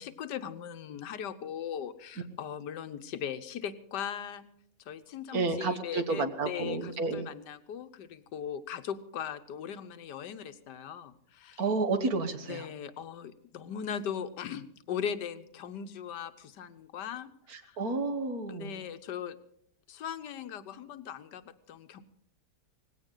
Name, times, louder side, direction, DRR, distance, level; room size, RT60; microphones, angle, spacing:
voice 1, 0.0-4.4 4.8-11.6 12.4-17.3 17.6-17.8 18.5-19.4 19.9-21.4 21.7-22.0, left 8 dB, 80° left, 11 dB, 1.5 m, -39 dB
voice 2, 5.3-7.3 11.6-12.7 17.5-18.8, right 3 dB, 60° right, 8 dB, 1.8 m, -31 dB
19.0 x 16.0 x 3.9 m, 0.70 s
omnidirectional pair, 1.8 m